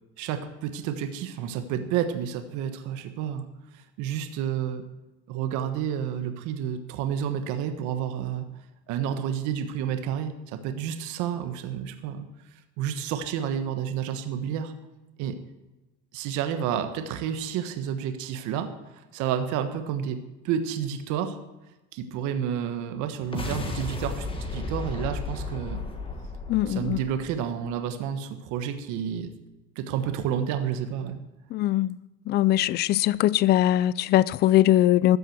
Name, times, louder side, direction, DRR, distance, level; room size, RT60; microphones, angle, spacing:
voice 1, 0.2-3.5 3.7-4.8 5.3-8.5 8.9-12.3 12.8-14.7 15.2-15.4 16.1-21.4 21.9-25.8 26.7-29.3 29.7-31.2, right 9 dB, 60° right, 1.3 m, -30 dB
sound 1, 23.2-27.7, left 3 dB, 15° left, 1.7 m, -34 dB
voice 2, 26.5-27.0 31.5-31.9 32.3-35.2, left 14 dB, 30° left, 0.4 m, -21 dB
13.5 x 7.7 x 7.9 m
supercardioid pair, 125°, 34 cm